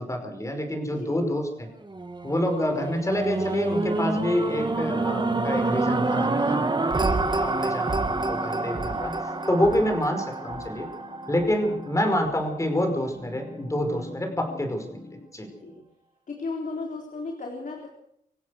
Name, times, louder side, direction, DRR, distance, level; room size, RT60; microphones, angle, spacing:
voice 1, 0.0-1.7 2.2-7.0 7.4-9.1 9.5-10.9 11.3-14.9 15.3-15.5, left 1 dB, 20° left, 4 dB, 5.3 m, -27 dB
sound 1, 1.9-12.2 12.7-12.8, right 3 dB, 30° right, 1.7 m, -27 dB
sound 2, 3.6-15.3, left 2 dB, 40° left, 3.3 m, -43 dB
voice 2, 6.8-7.2 15.6-15.8 16.3-17.9, left 3 dB, 65° left, 1 dB, 3.9 m, -35 dB
26.5 x 15.5 x 6.5 m, 0.72 s
wide cardioid pair, 125°, 15 cm